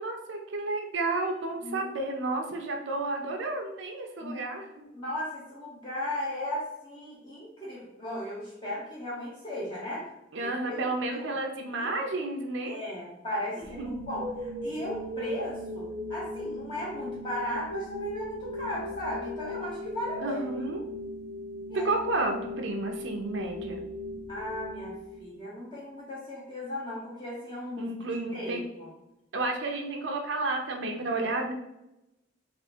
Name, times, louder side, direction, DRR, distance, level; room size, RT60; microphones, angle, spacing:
voice 1, 0.0-4.9 10.3-12.8 13.6-14.0 20.2-20.8 21.8-23.8 27.8-28.6 29.3-31.5, right 2 dB, 65° right, 2 dB, 0.6 m, -31 dB
voice 2, 4.9-10.1 10.6-10.8 11.8-11.9 12.7-20.4 21.7-21.9 24.3-27.9 28.3-28.6, left 1 dB, 25° left, -7 dB, 0.8 m, -36 dB
sound 1, 13.6-25.7, left 1 dB, 20° right, 0.5 m, -38 dB
3.5 x 2.5 x 4.3 m, 0.90 s
head